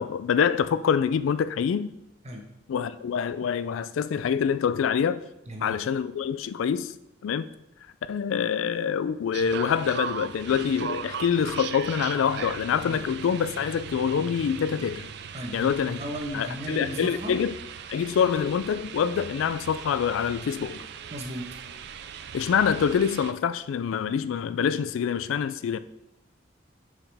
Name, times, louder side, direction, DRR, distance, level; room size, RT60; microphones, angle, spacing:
voice 1, 0.0-1.9 2.7-5.2 5.6-6.9 7.2-7.5 8.1-15.1 15.5-16.0 16.3-17.5 17.9-20.8 22.3-25.8, left 7 dB, 85° left, 0.3 m, -26 dB
voice 2, 5.5-5.8 12.8-13.0 15.3-17.4 21.1-21.6, equal, 35° right, 1.0 m, -35 dB
sound 1, 9.3-23.3, right 7 dB, 55° right, 0.3 m, -39 dB
7.0 x 4.9 x 3.4 m
head